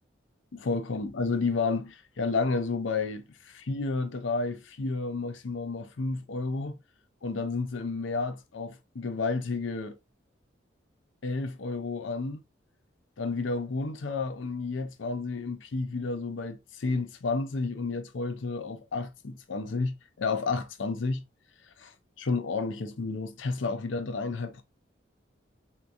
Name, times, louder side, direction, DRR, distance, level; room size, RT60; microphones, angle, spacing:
voice 1, 0.5-6.8 7.2-9.9 11.2-12.4 13.2-21.2 21.8-21.9 22.2-24.6, left 3 dB, 80° left, 0.5 m, -31 dB
3.5 x 2.8 x 2.5 m
head